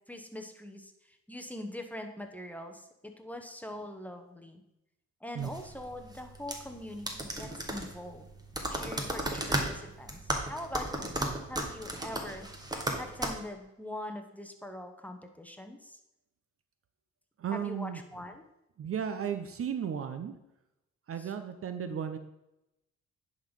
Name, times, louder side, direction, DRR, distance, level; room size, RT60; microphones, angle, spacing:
voice 1, 0.1-4.6 5.2-8.3 8.7-12.5 13.0-16.0 17.5-18.4 21.1-21.3, left 1 dB, 5° left, 5 dB, 1.0 m, -43 dB
sound 1, 5.4-13.3, right 1 dB, 15° right, 1.4 m, -35 dB
voice 2, 17.4-18.0 18.8-20.4 21.1-22.2, right 8 dB, 50° right, 9 dB, 0.7 m, -34 dB
10.0 x 4.0 x 5.3 m, 0.89 s
cardioid pair, 90°, 30 cm